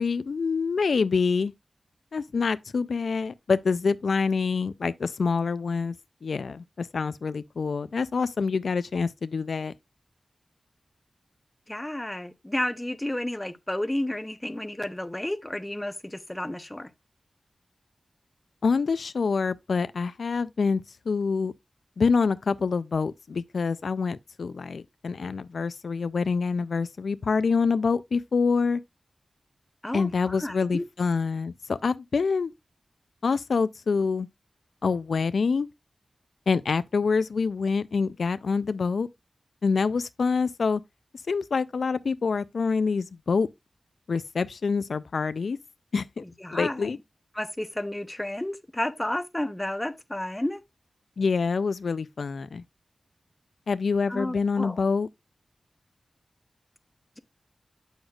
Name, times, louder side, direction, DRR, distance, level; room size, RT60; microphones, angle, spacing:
voice 1, 0.0-1.5 2.1-6.0 6.2-9.7 18.6-21.5 22.0-28.8 29.9-32.5 33.2-34.3 34.8-35.7 36.5-39.1 39.6-40.8 41.3-43.5 44.1-45.6 45.9-46.2 46.5-47.0 51.2-52.6 53.7-55.1, left 5 dB, 80° left, 0.3 m, -26 dB
voice 2, 11.7-16.9 29.8-30.8 46.2-46.9 47.3-50.6 54.1-54.8, left 1 dB, 15° left, 0.7 m, -32 dB
7.9 x 6.4 x 2.3 m
wide cardioid pair, 90°, 0 cm